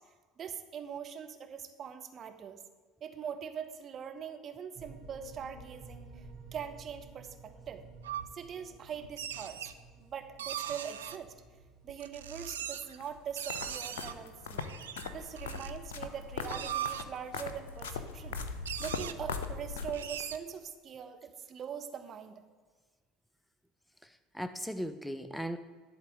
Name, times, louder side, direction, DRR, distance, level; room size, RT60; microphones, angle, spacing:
voice 1, 0.4-2.6 3.0-6.3 6.5-7.8 8.3-9.7 10.0-11.3 11.8-14.7 15.0-18.4 18.8-22.4, right 8 dB, 40° right, 6 dB, 1.0 m, -42 dB
sound 1, 4.7-17.3, right 3 dB, 60° right, 2.2 m, -55 dB
sound 2, 8.0-8.3 9.0-9.7 10.4-11.2 11.9-13.0 13.4-14.1 14.6-15.7 16.3-17.0 18.0-18.1 18.3-18.4 18.7-19.1 19.9-20.4, right 10 dB, 80° right, 0.4 m, -39 dB
sound 3, 13.0-20.3, left 4 dB, 70° left, 0.7 m, -40 dB
voice 2, 24.0-25.6, equal, 5° left, 10 dB, 0.5 m, -38 dB
11.0 x 4.1 x 7.9 m, 1.5 s
figure-of-eight pair, 65°, 0 cm